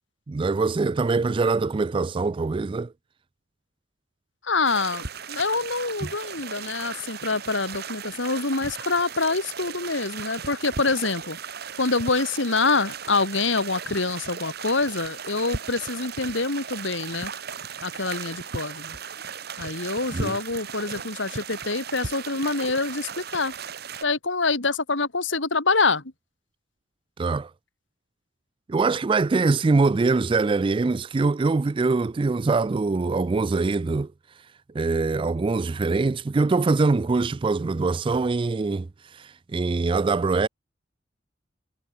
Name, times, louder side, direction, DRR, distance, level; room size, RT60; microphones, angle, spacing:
voice 1, 0.3-2.9 6.0-6.1 20.1-20.4 27.2-27.5 28.7-34.1 34.7-38.9 39.5-40.5, right 3 dB, 30° right, 0.3 m, -23 dB
voice 2, 4.4-11.4 11.8-17.3 17.8-18.9 19.6-23.5 24.0-26.0, left 3 dB, 85° left, 2.8 m, -26 dB
sound 1, 4.6-24.0, right 6 dB, 60° right, 2.3 m, -36 dB
head